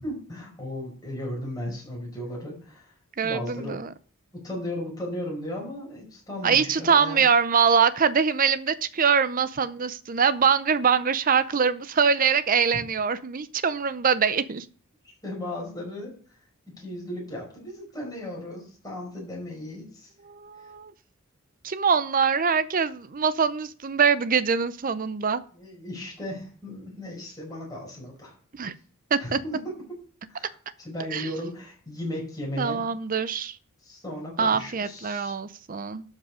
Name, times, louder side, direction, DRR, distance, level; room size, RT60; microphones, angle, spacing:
voice 1, 0.0-2.9 3.2-3.8 4.3-7.3 12.7-12.8 15.2-16.1 16.8-20.1 25.5-28.3 29.2-29.8 30.3-32.8 33.8-35.3, left 1 dB, 20° left, -3 dB, 5.3 m, -36 dB
voice 2, 3.2-3.9 6.4-14.7 20.2-20.9 21.6-25.4 28.5-28.7 29.1-29.4 31.1-31.3 32.6-33.6 34.4-36.0, right 6 dB, 40° right, 15 dB, 0.6 m, -23 dB
12.5 x 5.6 x 4.9 m, 0.43 s
head